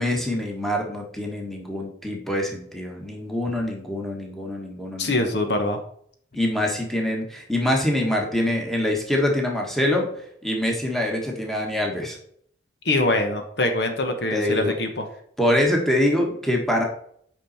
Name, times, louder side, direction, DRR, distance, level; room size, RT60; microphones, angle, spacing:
voice 1, 0.0-5.1 6.3-10.1 10.4-12.2 14.3-14.7 15.4-16.8, left 1 dB, ahead, 0 dB, 1.5 m, -24 dB
voice 2, 5.0-5.8 12.8-15.1, left 2 dB, 65° left, 5 dB, 1.2 m, -23 dB
8.9 x 5.4 x 4.2 m, 0.65 s
head